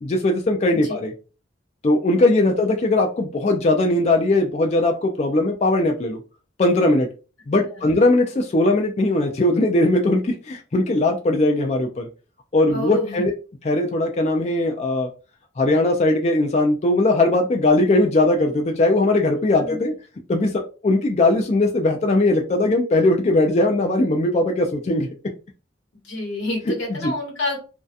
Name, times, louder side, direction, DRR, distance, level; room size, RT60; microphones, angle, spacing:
voice 1, 0.0-1.1 1.8-6.2 6.6-7.1 7.5-12.1 12.5-13.3 13.6-15.1 15.6-19.9 20.3-25.1 27.0-27.1, left 2 dB, 35° left, 2 dB, 0.3 m, -19 dB
voice 2, 12.7-13.3 19.6-19.8 26.0-27.6, left 2 dB, 75° left, -2 dB, 1.1 m, -28 dB
2.7 x 2.2 x 2.3 m, 0.34 s
head